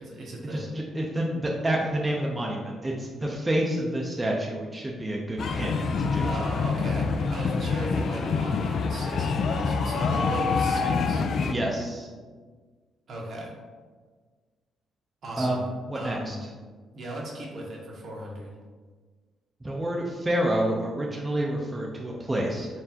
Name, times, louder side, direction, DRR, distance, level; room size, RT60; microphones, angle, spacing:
voice 1, 0.0-0.6 6.2-11.2 13.1-13.5 15.2-15.6 15.9-16.4 16.9-18.5, right 1 dB, 55° right, -1 dB, 1.0 m, -36 dB
voice 2, 0.5-6.3 11.5-12.1 15.3-15.6 15.9-16.4 19.6-22.7, right 1 dB, 20° right, -2 dB, 0.5 m, -28 dB
sound 1, 5.4-11.5, left 4 dB, 60° left, 0.3 m, -26 dB
4.4 x 3.2 x 2.8 m, 1.4 s
cardioid pair, 90°, 0 cm